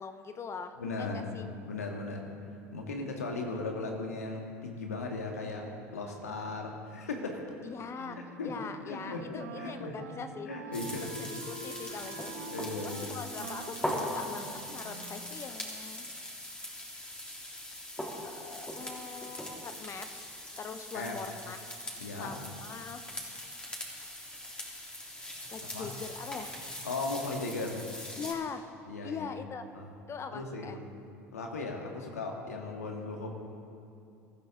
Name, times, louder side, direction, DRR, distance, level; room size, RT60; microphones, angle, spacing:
voice 1, 0.0-1.4 7.6-8.2 8.4-10.5 11.0-12.3 12.8-16.1 18.4-20.3 20.6-21.6 22.2-23.0 25.5-26.5 28.2-28.6 29.0-29.6 30.1-30.8, left 5 dB, 35° left, 9 dB, 1.0 m, -42 dB
voice 2, 0.8-1.4 1.7-2.3 2.7-5.7 5.9-7.4 8.2-8.5 8.9-9.9 10.5-11.1 11.9-12.1 12.5-13.2 20.9-21.2 22.0-22.3 25.7-25.9 26.8-27.8 28.9-29.3 29.7-29.9 30.3-30.9 31.3-33.3, left 3 dB, 85° left, 1 dB, 2.0 m, -37 dB
Wind instrument woodwind instrument, 8.0-15.4, right 5 dB, 75° right, 1.5 m, -46 dB
sound 1, 10.7-28.3, left 1 dB, 10° left, 3.5 m, -41 dB
24.0 x 14.5 x 3.8 m, 2.6 s
hypercardioid pair, 70°, 8 cm